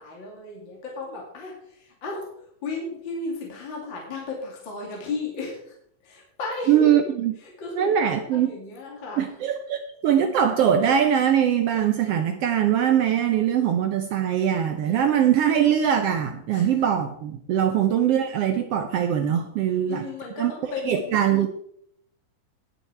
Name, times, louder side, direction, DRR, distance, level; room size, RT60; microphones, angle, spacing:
voice 1, 0.0-2.3 2.6-5.7 6.0-6.9 7.4-9.2 14.9-15.0 16.5-16.7 17.6-17.7 19.9-21.2, left 3 dB, 40° left, -2 dB, 2.7 m, -34 dB
voice 2, 6.7-7.3 7.8-8.5 9.2-20.0 20.4-20.5 20.9-21.5, right 9 dB, 85° right, 7 dB, 1.3 m, -22 dB
19.0 x 6.6 x 4.5 m, 0.71 s
omnidirectional pair, 3.8 m